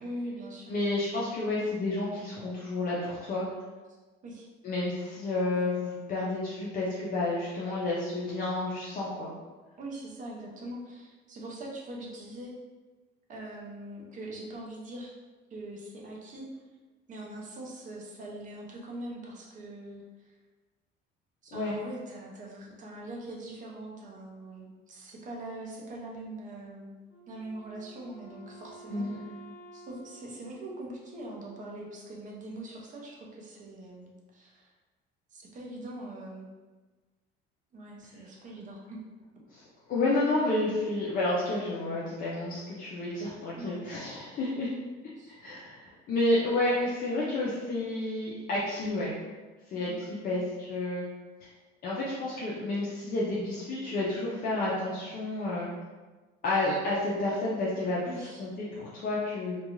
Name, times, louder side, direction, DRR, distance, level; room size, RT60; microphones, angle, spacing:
voice 1, 0.0-0.7 3.9-4.5 9.8-12.5 13.3-15.1 15.5-16.5 17.1-20.4 21.4-26.9 27.3-29.2 29.7-34.7 35.3-36.5 37.7-39.0 43.6-43.8 45.2-45.4 49.7-50.4 58.0-58.5, right 1 dB, 35° right, -2 dB, 0.6 m, -42 dB
voice 2, 0.7-3.5 4.6-9.3 21.5-21.7 28.9-29.2 39.5-39.6 39.9-44.7 45.3-49.1 49.7-51.1 51.4-51.5 51.8-55.7 56.4-58.0 58.4-59.6, left 2 dB, 45° left, -6 dB, 0.5 m, -30 dB
Wind instrument woodwind instrument, 27.1-31.6, right 2 dB, 10° right, 1.0 m, -52 dB
2.4 x 2.2 x 3.0 m, 1.3 s
cardioid pair, 145°, 21 cm